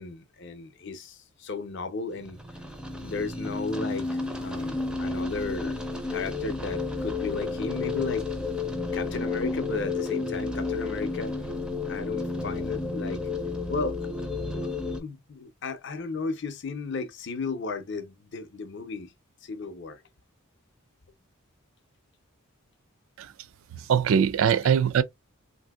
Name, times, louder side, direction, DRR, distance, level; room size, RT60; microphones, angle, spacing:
voice 1, 0.0-2.4 3.0-5.8 6.1-8.2 8.9-11.5 11.9-13.2 13.7-14.0 14.5-14.7 15.0-19.1 19.4-20.0, left 3 dB, 55° left, 0.5 m, -34 dB
sound 1, 2.2-15.0, left 3 dB, 5° right, 0.4 m, -31 dB
voice 2, 23.8-25.0, right 7 dB, 70° right, 0.3 m, -22 dB
3.4 x 2.6 x 2.2 m
head